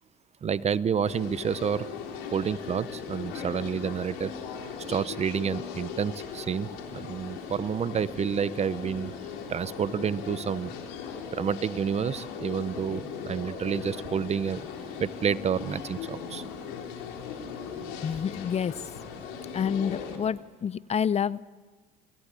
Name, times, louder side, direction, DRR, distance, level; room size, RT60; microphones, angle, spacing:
voice 1, 0.4-1.9 2.3-4.3 4.9-9.1 9.5-10.7 11.3-14.6 15.0-16.4, right 7 dB, 35° right, 17 dB, 0.8 m, -29 dB
sound 1, 1.1-20.2, left 6 dB, 75° left, 3.8 m, -38 dB
voice 2, 18.0-18.8 19.5-21.4, left 7 dB, 35° left, 18 dB, 0.7 m, -28 dB
28.5 x 17.0 x 8.4 m, 1.3 s
supercardioid pair, 75°, 19 cm